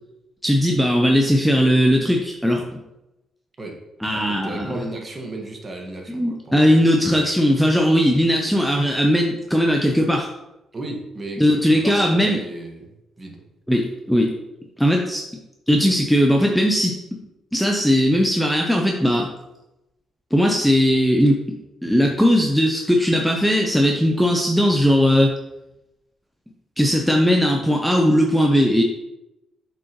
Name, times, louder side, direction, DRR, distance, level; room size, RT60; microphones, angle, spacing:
voice 1, 0.4-2.8 4.0-4.7 6.1-10.3 11.4-12.4 13.7-14.3 14.8-15.3 15.7-17.0 17.5-19.3 20.3-21.4 21.8-25.3 26.8-28.8, equal, ahead, 1 dB, 0.7 m, -18 dB
voice 2, 4.1-6.7 10.7-13.4, right 2 dB, 30° right, 0 dB, 1.6 m, -34 dB
7.7 x 5.1 x 3.0 m, 0.94 s
cardioid pair, 90°, 0 cm